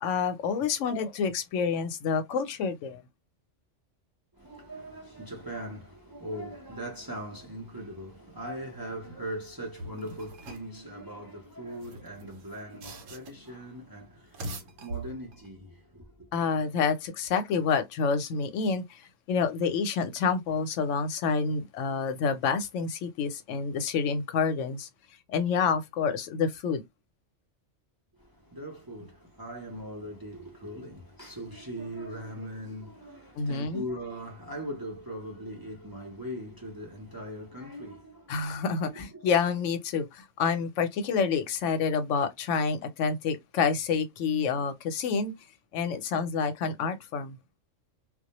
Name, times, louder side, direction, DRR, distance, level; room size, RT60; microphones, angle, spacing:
voice 1, 0.0-3.0 16.3-24.9 25.3-26.8 33.3-33.8 38.3-45.3 45.7-47.4, left 5 dB, 85° left, 0.9 m, -28 dB
voice 2, 4.3-16.3 28.1-39.2, equal, 25° right, 0.5 m, -40 dB
sound 1, 9.8-10.8 11.7-13.5 14.2-15.5, right 2 dB, 85° right, 1.0 m, -42 dB
2.2 x 2.1 x 2.8 m
omnidirectional pair, 1.2 m